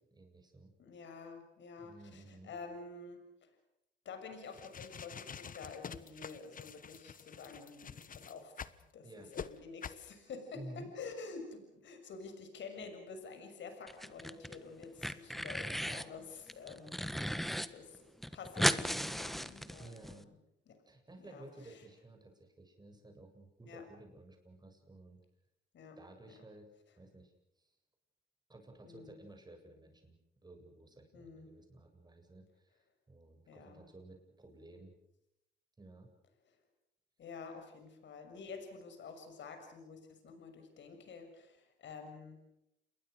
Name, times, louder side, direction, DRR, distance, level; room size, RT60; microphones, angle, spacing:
voice 1, 0.1-0.7 1.8-2.5 9.0-9.3 10.5-10.9 19.8-20.3 20.9-25.2 26.0-27.8 28.5-32.8 33.1-34.9 35.8-36.1, right 2 dB, 20° right, 4 dB, 8.0 m, -54 dB
voice 2, 0.8-3.5 4.0-8.7 8.9-18.1 18.3-20.4 20.7-20.8 21.2-21.8 23.7-23.8 25.7-26.0 26.3-26.4 28.8-29.1 31.1-31.5 33.5-33.8 37.2-42.4, left 4 dB, 65° left, 6 dB, 6.5 m, -49 dB
sound 1, 4.4-8.8 9.3-9.5 9.8-10.0, left 7 dB, 45° left, 1.3 m, -47 dB
sound 2, 13.9-14.6 14.8-16.1 16.5-17.7 17.9-18.0 18.2-20.1, equal, ahead, 1.4 m, -35 dB
29.5 x 22.0 x 6.6 m, 0.84 s
cardioid pair, 90°, 20 cm